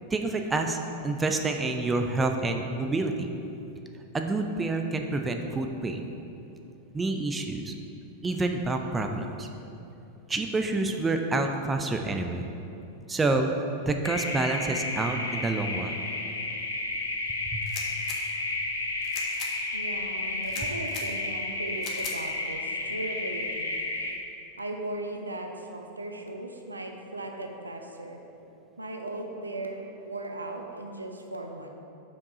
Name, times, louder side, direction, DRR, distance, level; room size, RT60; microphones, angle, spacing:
voice 1, 0.1-0.8 1.0-3.3 4.1-6.0 6.9-7.7 8.2-9.5 10.3-12.4 13.1-13.5 13.9-15.9 17.4-17.6, right 3 dB, 15° right, 4 dB, 0.4 m, -28 dB
sound 1, 14.0-24.1, left 2 dB, 75° left, 0.7 m, -32 dB
sound 2, 17.6-18.2 19.0-19.5 20.4-21.1 21.8-22.2, left 5 dB, 35° left, 0.8 m, -39 dB
voice 2, 19.7-23.7 24.6-28.2 28.8-31.7, right 2 dB, 80° right, 3 dB, 0.5 m, -37 dB
5.3 x 4.7 x 4.8 m, 2.9 s
figure-of-eight pair, 90°, 0 cm